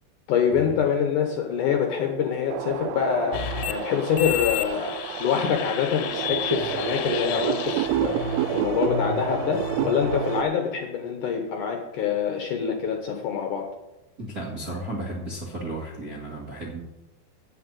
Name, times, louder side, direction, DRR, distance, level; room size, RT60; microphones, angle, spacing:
voice 1, 0.3-3.4 3.7-4.9 5.2-8.2 8.5-13.6, left 7 dB, 70° left, 3 dB, 2.0 m, -25 dB
sound 1, 0.7-10.4, right 2 dB, 15° left, 1.7 m, -45 dB
sound 2, 2.5-10.4, right 13 dB, 85° right, 2.6 m, -30 dB
sound 3, 3.3-10.4, left 9 dB, 90° left, 2.9 m, -32 dB
voice 2, 14.2-16.8, right 1 dB, 45° right, -5 dB, 1.2 m, -34 dB
8.2 x 7.6 x 8.8 m, 0.96 s
omnidirectional pair, 4.8 m